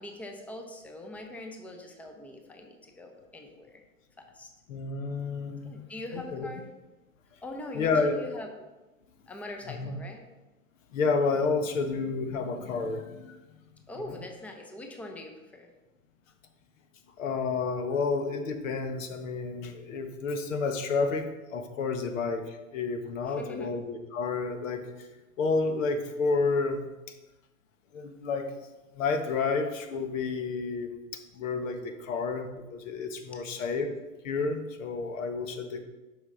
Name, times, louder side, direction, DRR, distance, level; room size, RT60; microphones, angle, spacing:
voice 1, 0.0-3.8 4.2-4.5 5.6-6.6 7.4-8.5 9.3-10.2 13.9-15.7 23.3-23.7, left 2 dB, 5° left, 3 dB, 0.6 m, -42 dB
voice 2, 4.7-6.5 7.7-8.2 9.7-10.0 10.9-13.4 14.1-14.2 17.2-24.8 25.4-26.9 27.9-28.5 28.9-33.9 34.2-35.8, left 4 dB, 65° left, 6 dB, 1.2 m, -30 dB
7.9 x 5.5 x 3.9 m, 1.1 s
hypercardioid pair, 115°, 43 cm